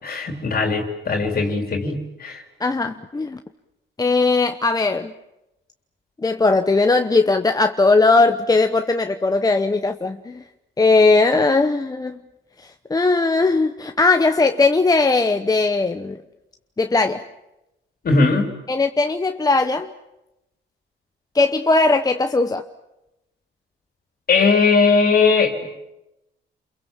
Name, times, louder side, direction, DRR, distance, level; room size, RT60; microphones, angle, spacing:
voice 1, 0.0-2.4 18.0-18.5 24.3-25.6, left 4 dB, 50° left, 3 dB, 3.5 m, -19 dB
voice 2, 2.6-3.4 4.0-5.1 6.2-10.4 10.8-12.2 12.6-16.2 16.8-17.2 18.7-19.9 21.3-22.6, left 3 dB, 20° left, 7 dB, 1.0 m, -18 dB
29.5 x 22.5 x 7.3 m, 0.91 s
cardioid pair, 90°, 20 cm